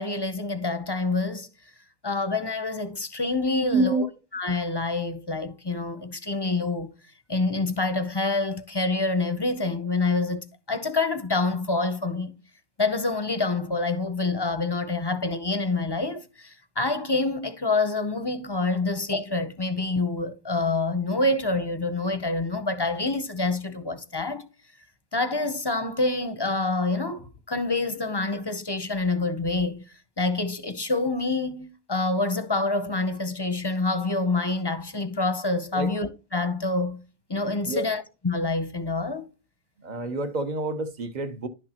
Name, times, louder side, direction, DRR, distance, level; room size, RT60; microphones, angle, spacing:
voice 1, 0.0-1.5 2.0-4.0 4.3-6.9 7.3-12.3 12.8-24.4 25.1-37.0 37.3-39.3, left 3 dB, 25° left, 0.7 m, -27 dB
voice 2, 3.7-4.0 35.7-35.9 37.6-37.9 39.8-41.5, right 2 dB, 45° right, 1.0 m, -27 dB
11.0 x 6.5 x 2.9 m
omnidirectional pair, 1.1 m